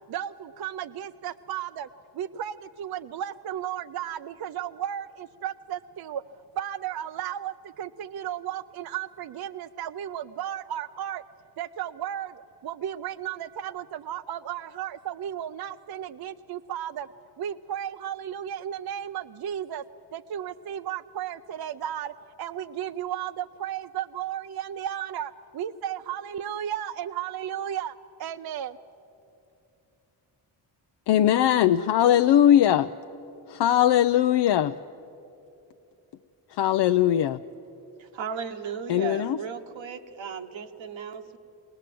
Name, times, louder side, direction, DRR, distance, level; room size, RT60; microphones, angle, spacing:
voice 1, 0.1-6.2 6.5-11.2 11.6-17.1 17.4-19.8 20.1-28.8, right 10 dB, 55° right, 11 dB, 0.5 m, -34 dB
voice 2, 31.1-32.9 33.5-34.8 36.5-37.4 38.9-39.4, left 11 dB, 65° left, 8 dB, 0.5 m, -20 dB
voice 3, 38.0-41.4, right 6 dB, 75° right, 7 dB, 1.2 m, -36 dB
22.0 x 18.0 x 7.6 m, 2.9 s
cardioid pair, 70°, 46 cm